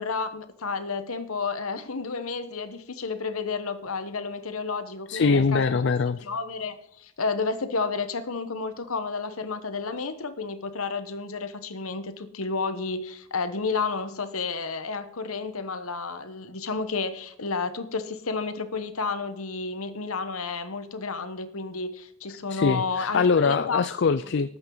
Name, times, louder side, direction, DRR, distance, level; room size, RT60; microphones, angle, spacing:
voice 1, 0.0-5.8 6.2-23.8, left 4 dB, 85° left, 11 dB, 1.2 m, -31 dB
voice 2, 5.1-6.2 22.5-24.5, left 5 dB, 55° left, 13 dB, 0.4 m, -23 dB
18.5 x 8.8 x 4.0 m, 0.72 s
head